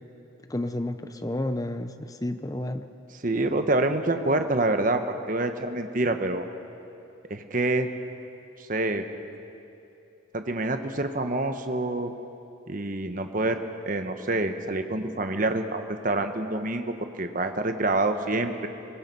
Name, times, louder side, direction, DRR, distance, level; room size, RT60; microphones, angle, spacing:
voice 1, 0.5-2.8, left 1 dB, 15° left, 9 dB, 0.7 m, -31 dB
voice 2, 3.1-6.5 7.3-7.9 8.7-9.0 10.3-12.1 12.7-13.6 13.9-18.7, right 2 dB, 40° right, 7 dB, 1.1 m, -27 dB
22.5 x 21.5 x 5.5 m, 2.8 s
head